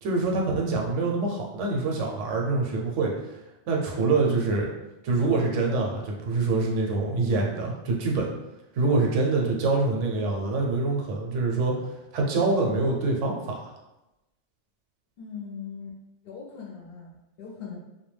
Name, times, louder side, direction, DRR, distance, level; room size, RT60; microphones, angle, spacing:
voice 1, 0.0-3.1 3.7-4.7 5.0-8.3 8.7-13.7, right 3 dB, 80° right, -1 dB, 0.9 m, -25 dB
voice 2, 15.2-16.0 16.2-17.8, left 6 dB, 65° left, -2 dB, 0.7 m, -40 dB
2.2 x 2.2 x 3.1 m, 0.97 s
omnidirectional pair, 1.3 m